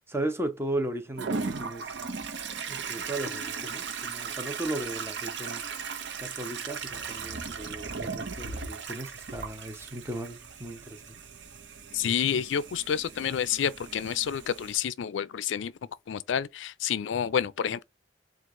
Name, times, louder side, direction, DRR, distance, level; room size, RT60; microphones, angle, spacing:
voice 1, 0.1-1.9 2.7-5.6 6.2-11.0, right 1 dB, 15° right, 0.7 m, -36 dB
Toilet flush, 1.2-14.8, right 5 dB, 65° right, 0.8 m, -37 dB
voice 2, 11.9-15.7 16.1-17.8, left 8 dB, 80° left, 0.4 m, -29 dB
4.6 x 2.4 x 3.6 m
head